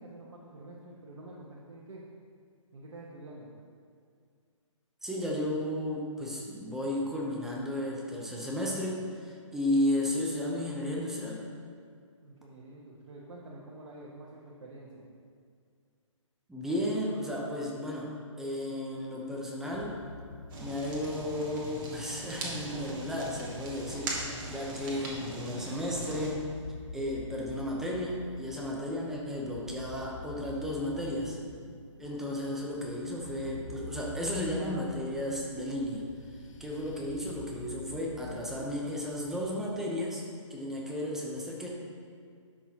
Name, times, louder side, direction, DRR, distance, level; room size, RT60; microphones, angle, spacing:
voice 1, 0.0-2.0 2.7-3.5 12.2-15.1, right 2 dB, 70° right, -5 dB, 1.4 m, -48 dB
voice 2, 5.0-11.5 16.5-20.0 20.6-24.1 24.5-26.4 26.9-31.4 32.0-36.1 36.6-40.2 40.5-41.7, left 1 dB, ahead, -3 dB, 0.7 m, -33 dB
sound 1, 19.7-39.5, left 3 dB, 70° left, 0.8 m, -47 dB
Fire, 20.5-26.3, right 2 dB, 40° right, 1.8 m, -40 dB
12.0 x 6.2 x 2.9 m, 2.2 s
hypercardioid pair, 150°, 17 cm